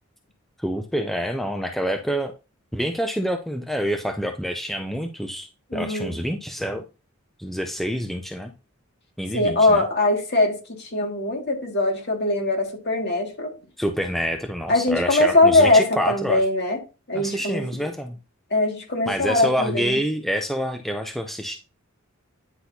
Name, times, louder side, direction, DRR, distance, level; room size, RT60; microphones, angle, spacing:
voice 1, 0.6-2.3 2.7-6.8 7.4-8.5 9.2-9.8 13.8-16.4 17.1-18.2 19.1-21.6, equal, ahead, 0.5 m, -27 dB
voice 2, 5.7-6.2 9.3-13.5 14.7-16.8 17.1-17.6 18.5-20.0, left 2 dB, 50° left, 2.1 m, -21 dB
9.7 x 6.0 x 2.8 m
head